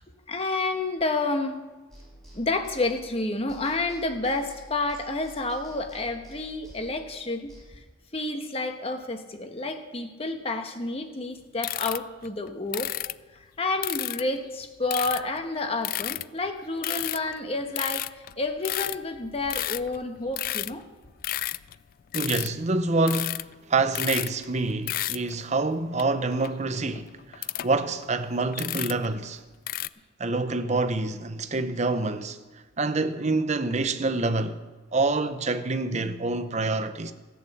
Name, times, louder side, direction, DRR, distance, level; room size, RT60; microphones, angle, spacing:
voice 1, 0.3-1.6 2.3-7.8 8.1-12.9 13.3-18.1 18.4-20.8, left 2 dB, 30° left, 1.2 m, -30 dB
sound 1, 1.9-3.2 3.5-7.6, right 1 dB, ahead, 5.1 m, -49 dB
sound 2, 11.6-13.1 13.8-14.2 14.9-15.4 15.8-16.5 16.8-17.4 17.8-20.8 21.1-21.8 22.1-22.5 22.9-23.5 23.8-24.5 24.7-25.4 26.0-26.1 26.4-27.7 28.0-28.1 28.5-29.1 29.7-29.9, left 15 dB, 50° left, 0.3 m, -32 dB
voice 2, 22.1-29.4 30.2-32.4 32.8-34.6 34.9-37.1, right 3 dB, 35° right, 0.7 m, -27 dB
14.5 x 8.7 x 7.1 m
head